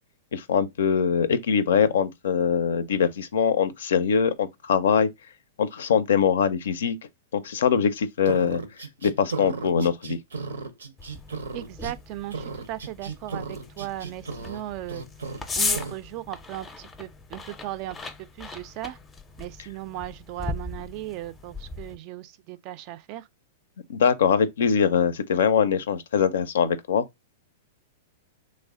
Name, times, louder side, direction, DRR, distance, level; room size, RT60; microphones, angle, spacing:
voice 1, 0.3-5.1 5.6-7.0 7.3-8.6 9.0-10.2 23.9-27.1, left 7 dB, 75° left, 0.4 m, -22 dB
sound 1, 8.2-12.0 12.3-14.6 14.9-15.4 15.7-16.0, right 4 dB, 90° right, 0.6 m, -35 dB
sound 2, 11.0-22.0, left 4 dB, 15° left, 0.5 m, -37 dB
voice 2, 11.5-15.0 15.6-19.0 19.4-23.3, right 14 dB, 45° right, 0.3 m, -37 dB
3.2 x 2.1 x 3.6 m
hypercardioid pair, 115°, 0 cm